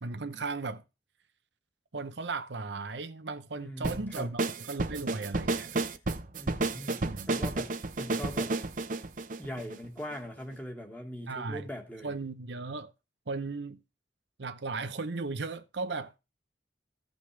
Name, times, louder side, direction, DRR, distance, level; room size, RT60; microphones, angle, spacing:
voice 1, 0.0-0.8 1.9-5.8 7.0-7.3 11.3-11.6 12.0-12.9 13.3-13.8 14.4-16.1, right 3 dB, 80° right, 0.8 m, -36 dB
voice 2, 3.5-4.3 6.4-7.0 7.3-8.6 9.4-12.1, equal, 10° left, 1.7 m, -41 dB
sound 1, 3.8-10.1, right 2 dB, 45° right, 0.8 m, -31 dB
15.0 x 5.3 x 3.3 m
head